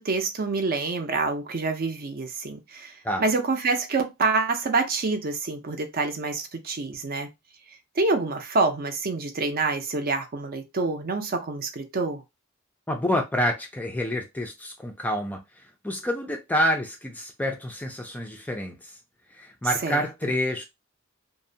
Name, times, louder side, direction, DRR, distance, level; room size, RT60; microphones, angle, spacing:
voice 1, 0.0-2.9 3.2-7.3 8.0-12.2 19.8-20.0, right 3 dB, 45° right, 0.5 m, -27 dB
voice 2, 12.9-15.4 15.8-18.9 19.3-20.6, equal, 10° left, 0.4 m, -28 dB
2.6 x 2.0 x 2.6 m
head